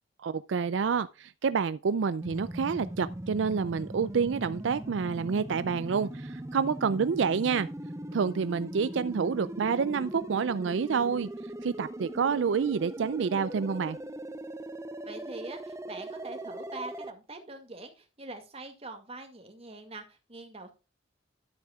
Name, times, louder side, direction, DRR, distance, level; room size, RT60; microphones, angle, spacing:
voice 1, 0.2-7.7 8.1-11.3 11.6-14.0, right 5 dB, 80° right, 0.4 m, -28 dB
sound 1, 2.2-17.1, right 1 dB, 15° right, 0.6 m, -40 dB
voice 2, 15.0-20.7, right 2 dB, 35° right, 2.1 m, -44 dB
12.5 x 8.3 x 2.4 m
head